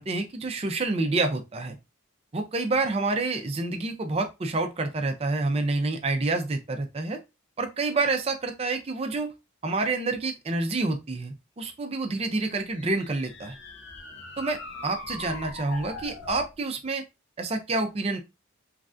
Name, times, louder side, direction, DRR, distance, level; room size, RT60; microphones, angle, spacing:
voice 1, 0.0-1.8 2.3-7.2 7.6-9.3 9.6-13.6 14.4-14.6 14.8-17.0 17.4-18.2, right 3 dB, 30° right, 6 dB, 0.4 m, -28 dB
sound 1, 12.2-16.5, left 3 dB, 55° left, 0.6 m, -41 dB
3.2 x 2.3 x 2.5 m, 0.24 s
head